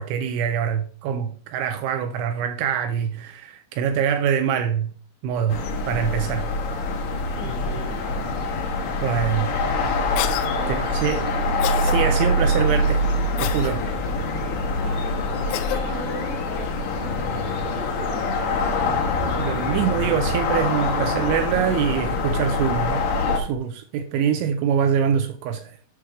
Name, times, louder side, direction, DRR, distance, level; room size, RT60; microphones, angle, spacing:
voice 1, 0.0-4.9 5.2-6.5 9.0-9.5 10.7-11.3 11.8-13.0 13.4-13.8 19.4-25.8, right 8 dB, 85° right, 2.8 m, -24 dB
sound 1, 5.5-23.4, left 2 dB, 70° left, 2.1 m, -24 dB
voice 2, 7.4-8.5 9.3-9.7 10.6-11.4 14.7-18.9, right 3 dB, 60° right, 4.2 m, -38 dB
Cough, 10.2-10.5 11.6-12.0 13.4-13.8 15.5-15.8, left 12 dB, 90° left, 3.2 m, -28 dB
8.5 x 6.0 x 3.3 m
omnidirectional pair, 5.8 m